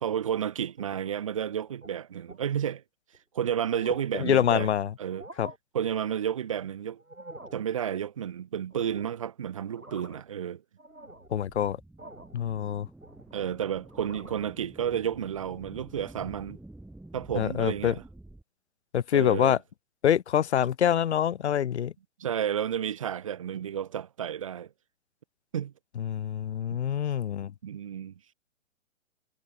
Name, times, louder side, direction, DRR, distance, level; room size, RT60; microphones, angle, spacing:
voice 1, 0.0-2.8 3.3-4.7 5.0-5.2 5.7-7.0 7.5-10.6 13.3-16.6 17.1-18.0 19.1-19.6 22.2-24.7 25.5-25.7 26.7-26.8 27.6-28.1, right 9 dB, 25° right, 0.5 m, -31 dB
sound 1, 0.7-1.2 1.7-1.9 2.3-2.5 3.1-3.2 3.5-4.2 5.0-5.6 7.0-7.7 8.7-9.3 9.6-10.4 10.8-11.4 12.0-12.4 12.8-13.5 13.8-14.5, right 1 dB, 90° right, 3.3 m, -48 dB
voice 2, 4.2-4.9 5.4-5.5 11.3-11.8 12.3-12.9 17.4-17.9 18.9-19.6 20.0-21.9 26.0-27.5, left 9 dB, 55° left, 0.5 m, -25 dB
sound 2, 11.2-18.4, right 1 dB, ahead, 0.9 m, -49 dB
figure-of-eight pair, 125°, 41 cm